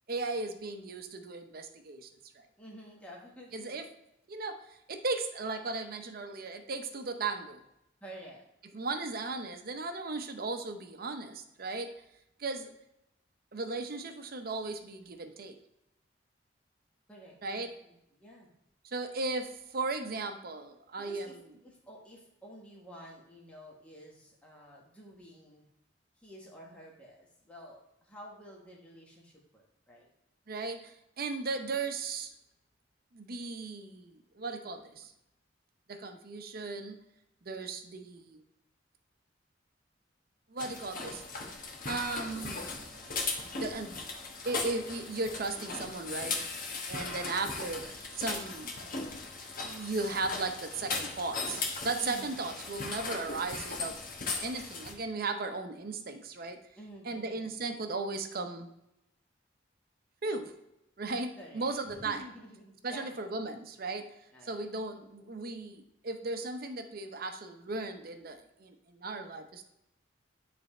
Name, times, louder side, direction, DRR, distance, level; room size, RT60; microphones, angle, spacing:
voice 1, 0.1-2.1 3.5-3.8 4.3-4.6 4.9-7.6 8.7-11.9 12.4-12.7 13.5-15.6 17.4-17.7 18.8-21.4 30.5-32.3 33.1-35.1 35.9-37.0 37.5-38.4 40.5-41.2 41.8-42.7 43.6-44.0 44.4-46.5 46.9-48.7 49.6-54.0 54.4-56.6 57.1-58.7 60.2-60.5 61.0-62.2 62.8-64.1 64.5-69.6, right 3 dB, 55° right, 7 dB, 0.7 m, -36 dB
voice 2, 2.6-3.9 8.0-8.4 17.1-18.5 21.0-25.6 26.2-30.1 46.9-47.2 52.0-52.5 56.8-57.5 61.4-63.1 64.3-64.7, equal, 5° left, -3 dB, 1.2 m, -51 dB
sound 1, 40.6-54.9, left 3 dB, 50° left, 1.1 m, -38 dB
9.5 x 3.4 x 4.2 m, 0.83 s
head